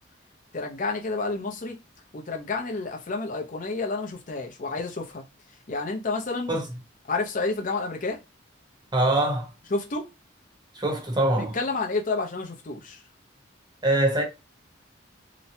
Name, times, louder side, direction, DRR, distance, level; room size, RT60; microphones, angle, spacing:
voice 1, 0.5-1.8 2.1-5.2 5.7-6.6 7.1-8.2 9.7-10.1 11.4-13.0, left 3 dB, 40° left, 0.6 m, -30 dB
voice 2, 8.9-9.5 10.7-11.5 13.8-14.2, right 1 dB, 20° right, 0.8 m, -23 dB
2.9 x 2.1 x 2.7 m
head